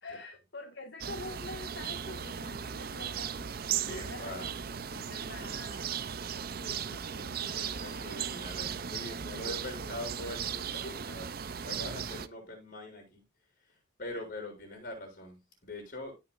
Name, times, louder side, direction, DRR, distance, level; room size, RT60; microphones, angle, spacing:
voice 1, 0.0-4.5 4.9-6.1 6.6-8.1 8.8-8.9 9.3-9.9 10.8-11.0 14.1-14.2, left 2 dB, 65° left, 1.6 m, -46 dB
sound 1, 1.0-12.3, right 8 dB, 50° right, 0.5 m, -37 dB
voice 2, 3.8-4.5 4.9-5.5 7.5-11.3 11.6-13.2 13.7-16.1, left 1 dB, 45° left, 6.9 m, -43 dB
16.5 x 6.2 x 2.5 m
head